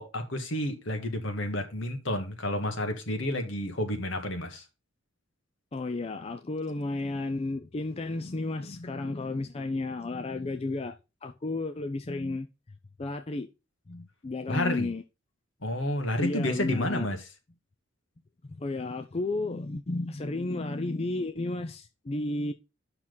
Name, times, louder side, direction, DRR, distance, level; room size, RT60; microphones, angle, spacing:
voice 1, 0.0-4.6 14.5-14.9 15.6-17.2, left 1 dB, 70° left, 1.8 m, -30 dB
voice 2, 5.7-11.0 11.2-12.5 13.0-13.5 13.9-15.0 16.2-17.1 18.4-22.5, left 2 dB, 30° left, 0.5 m, -33 dB
8.7 x 5.9 x 3.9 m
head